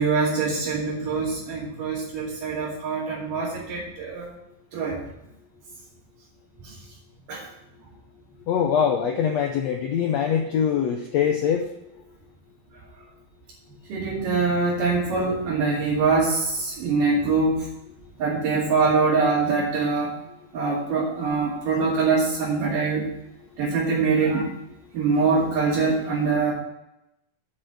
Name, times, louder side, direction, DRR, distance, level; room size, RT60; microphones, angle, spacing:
voice 1, 0.0-4.4 4.7-5.0 6.6-6.8 7.3-7.5 13.9-17.7 18.2-20.2 20.5-23.1 23.6-24.5 24.9-26.5, right 4 dB, 65° right, -7 dB, 3.9 m, -23 dB
voice 2, 8.5-11.7, left 8 dB, 85° left, 3 dB, 1.5 m, -23 dB
8.4 x 5.8 x 7.7 m, 0.85 s
omnidirectional pair, 4.1 m